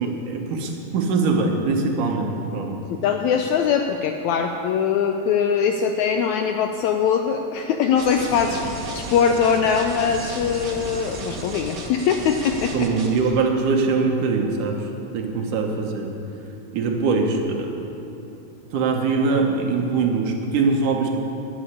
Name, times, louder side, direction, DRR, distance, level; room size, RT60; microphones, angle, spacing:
voice 1, 0.0-2.8 12.7-14.8 15.1-16.1 16.7-17.9 18.7-21.1, right 4 dB, 70° right, 2 dB, 2.7 m, -22 dB
voice 2, 2.9-12.7, left 7 dB, 80° left, 5 dB, 1.7 m, -22 dB
sound 1, 8.0-13.3, right 2 dB, 50° right, 1.4 m, -34 dB
11.0 x 8.4 x 9.9 m, 2.8 s
omnidirectional pair, 3.9 m